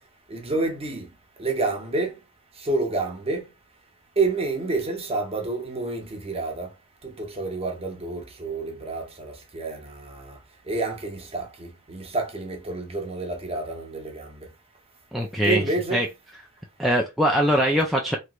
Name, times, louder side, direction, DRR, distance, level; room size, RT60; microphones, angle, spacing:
voice 1, 0.3-1.1 1.4-2.2 2.6-3.4 4.2-6.7 7.0-10.4 10.7-14.5 15.4-16.0, right 3 dB, 30° right, 0.9 m, -29 dB
voice 2, 15.1-15.6 15.9-16.1 16.8-18.2, equal, ahead, 0.4 m, -22 dB
3.2 x 3.0 x 2.4 m
head